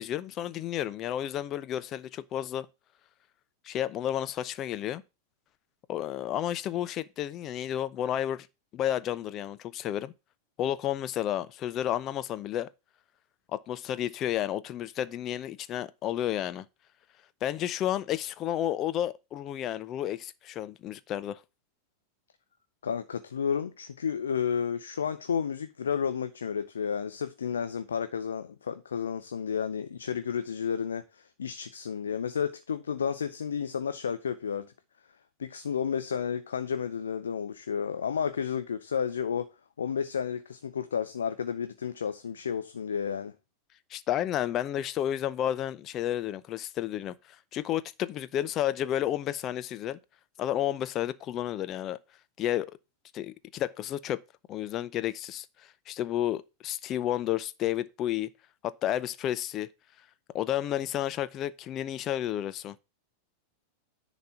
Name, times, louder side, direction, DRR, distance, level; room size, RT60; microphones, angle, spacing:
voice 1, 0.0-2.7 3.6-5.0 5.9-8.5 8.7-10.1 10.6-12.7 13.5-16.7 17.4-21.4 43.9-47.1 47.5-50.0 50.4-52.0 52.4-52.7 53.1-54.2 54.5-55.5 55.9-58.3 58.6-59.7 60.3-62.8, left 11 dB, 35° left, 0.6 m, -31 dB
voice 2, 22.8-34.7 35.4-39.5 39.8-43.3, left 7 dB, 70° left, 0.7 m, -31 dB
10.5 x 4.1 x 7.1 m
figure-of-eight pair, 90°, 0 cm